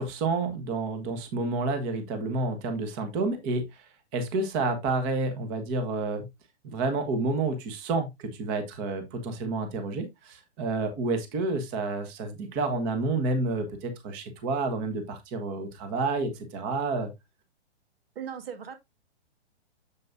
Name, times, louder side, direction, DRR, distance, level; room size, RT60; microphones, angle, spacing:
voice 1, 0.0-3.8 4.1-6.3 6.6-17.1, right 3 dB, 25° right, 1.5 m, -29 dB
voice 2, 18.2-18.8, right 8 dB, 60° right, 2.0 m, -37 dB
7.5 x 7.4 x 2.7 m
hypercardioid pair, 150°, 33 cm